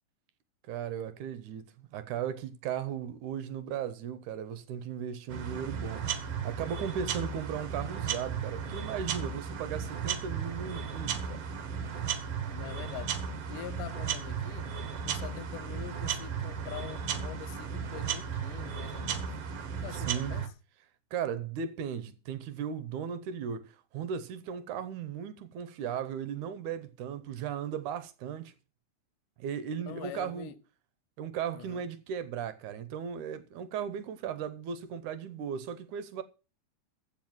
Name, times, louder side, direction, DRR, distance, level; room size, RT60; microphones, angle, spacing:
voice 1, 0.7-11.4 19.9-20.4 21.1-28.5 29.4-30.5 31.2-36.2, right 8 dB, 75° right, 2.2 m, -37 dB
sound 1, 5.3-20.5, right 7 dB, 55° right, 2.0 m, -35 dB
voice 2, 12.5-13.1 13.5-14.7 15.1-19.3 19.8-20.5 29.9-30.6 31.5-31.9, left 12 dB, 75° left, 2.2 m, -44 dB
15.0 x 5.0 x 7.8 m
omnidirectional pair, 3.9 m